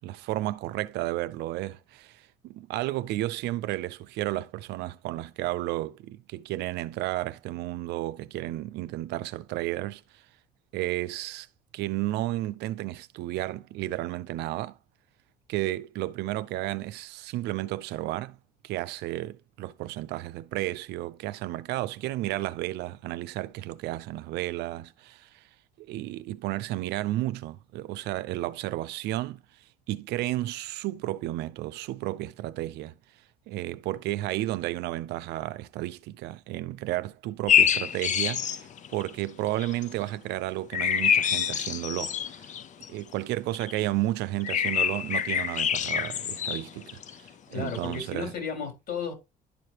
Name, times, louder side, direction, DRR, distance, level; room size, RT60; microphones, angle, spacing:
voice 1, 0.0-10.2 10.7-11.5 11.7-14.8 15.5-18.4 18.6-25.4 25.8-29.4 29.9-32.9 33.5-42.5 42.9-48.3, right 16 dB, 85° right, 0.5 m, -32 dB
sound 1, 37.5-39.1 39.6-39.9 40.7-42.9 43.5-43.8 44.4-47.3 47.7-48.0, left 8 dB, 45° left, 0.6 m, -26 dB
voice 2, 47.5-49.1, left 6 dB, 65° left, 4.1 m, -34 dB
11.5 x 4.9 x 2.9 m
cardioid pair, 110°, 17 cm